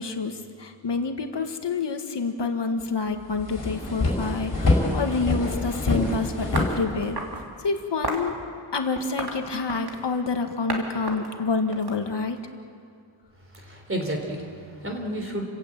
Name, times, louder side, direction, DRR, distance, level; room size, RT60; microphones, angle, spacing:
voice 1, 0.0-7.2 7.6-8.3 8.7-12.4, left 4 dB, 55° left, 5 dB, 1.8 m, -28 dB
sound 1, 2.8-2.9 3.2-7.4, left 2 dB, 40° left, 5.4 m, -25 dB
sound 2, 6.5-7.4 8.0-8.3 9.0-10.1 10.7-10.8 11.1-12.5, right 2 dB, 50° right, 3.0 m, -32 dB
voice 2, 13.5-15.4, right 1 dB, 25° right, 3 dB, 3.7 m, -31 dB
29.0 x 16.0 x 8.8 m, 2.3 s
wide cardioid pair, 175°, 49 cm